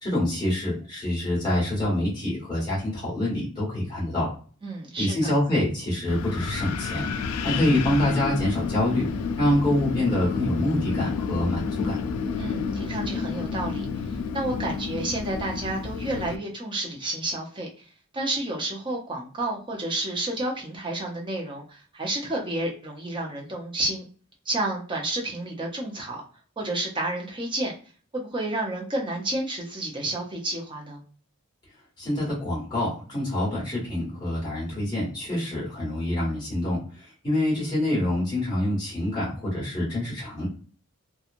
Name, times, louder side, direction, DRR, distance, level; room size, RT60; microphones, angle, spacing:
voice 1, 0.0-4.3 5.0-7.1 7.4-9.1 9.4-12.0 32.0-40.5, left 1 dB, 20° left, -6 dB, 1.5 m, -26 dB
voice 2, 4.6-5.2 12.4-13.9 14.3-17.8 18.1-24.1 24.5-26.2 26.6-27.7 28.1-31.0, right 1 dB, 20° right, -1 dB, 0.6 m, -30 dB
Wind, 6.1-16.4, left 5 dB, 85° left, 0.3 m, -30 dB
2.9 x 2.3 x 2.4 m, 0.40 s
head